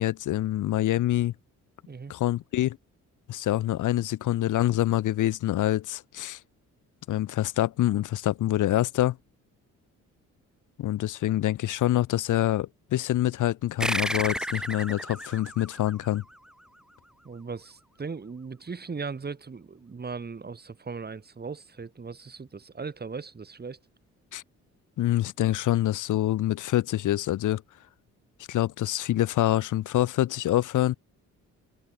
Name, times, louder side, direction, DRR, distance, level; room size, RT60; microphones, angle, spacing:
voice 1, 0.0-1.3 2.1-2.8 3.3-6.4 7.1-9.2 10.8-16.2 24.3-24.4 25.0-27.6 28.5-30.9, left 14 dB, 80° left, 4.2 m, -26 dB
sound 1, 13.8-16.8, equal, ahead, 3.1 m, -32 dB
voice 2, 17.2-23.8, right 5 dB, 30° right, 5.1 m, -38 dB
cardioid pair, 90°, 30 cm